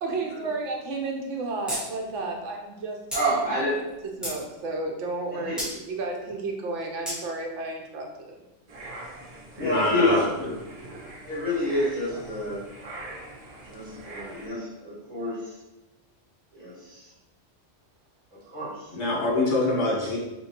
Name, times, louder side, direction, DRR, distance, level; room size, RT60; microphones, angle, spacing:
voice 1, 0.0-3.0 3.3-3.4 4.2-8.4, right 3 dB, 75° right, 1 dB, 1.0 m, -32 dB
sound 1, 1.7-1.8 2.1-2.2 3.1-3.2 3.9-4.4 5.6-5.7 7.1-7.2, equal, ahead, 1.1 m, -31 dB
voice 2, 3.1-3.8 5.3-5.6 9.6-10.3 11.3-12.6 13.7-15.5 16.5-17.1 18.5-18.9, left 1 dB, 25° right, -9 dB, 1.5 m, -28 dB
sound 2, 8.7-14.5, right 2 dB, 45° right, 0.5 m, -43 dB
voice 3, 9.6-10.5 18.9-20.2, left 2 dB, 65° left, -4 dB, 1.5 m, -25 dB
4.4 x 2.7 x 2.8 m, 1.0 s
omnidirectional pair, 1.3 m